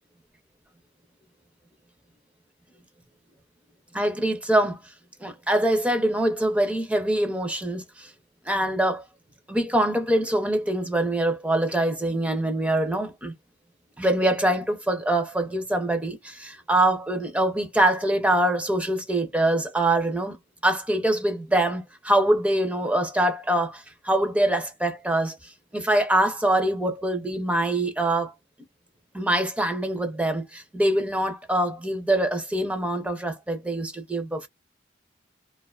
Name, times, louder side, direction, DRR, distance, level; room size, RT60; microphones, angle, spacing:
voice 1, 3.9-4.8 5.2-8.1 8.5-9.0 9.5-13.3 14.0-20.4 20.6-28.3 29.1-34.5, right 1 dB, 5° right, 0.4 m, -24 dB
2.4 x 2.2 x 2.3 m
head